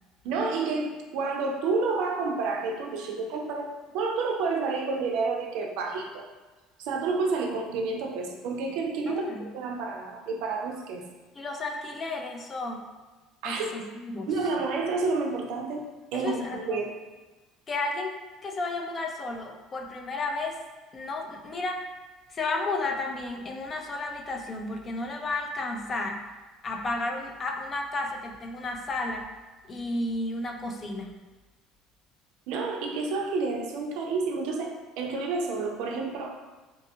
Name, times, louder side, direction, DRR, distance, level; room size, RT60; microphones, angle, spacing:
voice 1, 0.2-6.2 6.8-11.0 13.4-13.7 14.3-15.9 16.1-16.9 32.5-36.3, right 4 dB, 75° right, 1 dB, 0.4 m, -29 dB
voice 2, 9.1-9.5 11.3-12.9 13.4-14.3 16.1-16.8 17.7-18.1 18.4-20.6 20.9-21.9 22.3-26.2 26.6-29.3 29.7-31.1, left 2 dB, 30° left, 3 dB, 0.4 m, -32 dB
2.6 x 2.3 x 2.7 m, 1.3 s
supercardioid pair, 105°, 0 cm